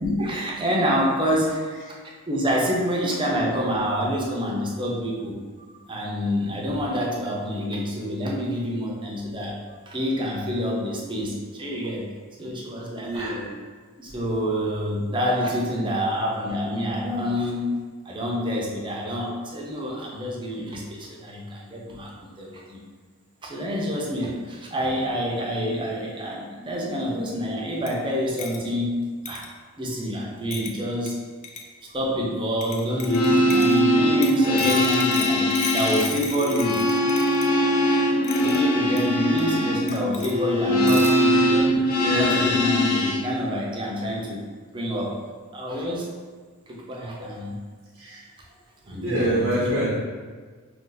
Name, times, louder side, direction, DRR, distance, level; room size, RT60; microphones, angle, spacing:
voice 1, 0.0-1.7 2.3-9.5 9.9-12.0 12.4-13.3 14.0-17.7 18.1-22.8 23.4-29.0 29.2-29.4 29.8-31.1 31.9-36.8 38.4-41.7 42.1-44.4 44.7-45.2 45.5-46.1 46.7-47.5 48.8-49.7, equal, 20° right, -3 dB, 0.5 m, -27 dB
voice 2, 13.0-13.6 41.4-42.6 47.1-47.3 47.9-48.3 49.0-50.0, right 1 dB, 75° right, -7 dB, 0.6 m, -27 dB
sound 1, 27.9-28.0 28.4-28.6 29.2-29.5 30.5-30.8 31.1-31.2 31.4-31.7 32.6-33.8 34.2-37.5 38.2-38.6 39.0-39.1 39.4-39.5 39.9-40.3 40.9-41.2, left 5 dB, 30° left, 0.3 m, -34 dB
sound 2, 32.9-43.2, equal, 80° left, 0.5 m, -21 dB
2.5 x 2.4 x 3.9 m, 1.5 s
head